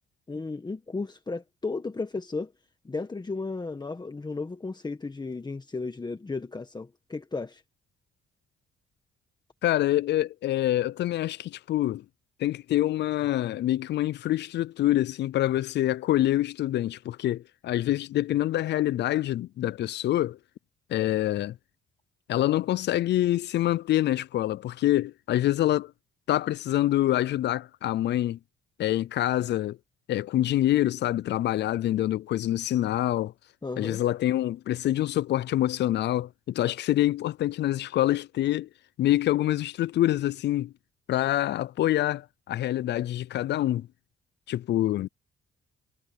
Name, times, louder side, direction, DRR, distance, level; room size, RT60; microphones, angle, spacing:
voice 1, 0.3-2.5 2.8-7.6 33.6-34.0, left 3 dB, 20° left, 1.6 m, -34 dB
voice 2, 9.6-12.0 12.4-20.4 20.9-21.6 22.3-25.9 26.3-28.4 28.8-29.8 30.1-33.3 33.8-38.7 39.0-40.7 41.1-43.9 44.5-45.1, left 13 dB, 60° left, 0.4 m, -26 dB
cardioid pair, 90°, 20 cm